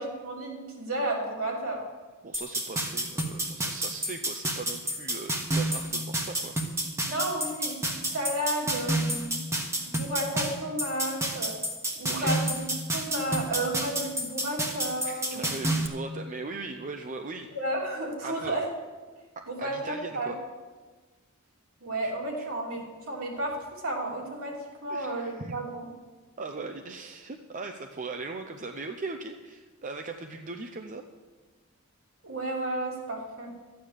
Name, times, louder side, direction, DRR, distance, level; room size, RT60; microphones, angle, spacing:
voice 1, 0.0-1.8 7.1-9.4 9.9-11.5 11.9-15.8 17.5-18.7 19.5-20.3 21.8-25.9 32.2-33.5, right 1 dB, 70° right, -2 dB, 3.2 m, -32 dB
voice 2, 2.2-6.5 12.1-12.4 15.0-17.5 18.2-18.6 19.4-20.4 22.4-22.5 24.9-25.6 26.4-31.0, right 3 dB, 40° right, 5 dB, 0.6 m, -39 dB
sound 1, 2.3-15.9, right 1 dB, 15° right, 1.2 m, -30 dB
13.0 x 9.2 x 6.6 m, 1.4 s
head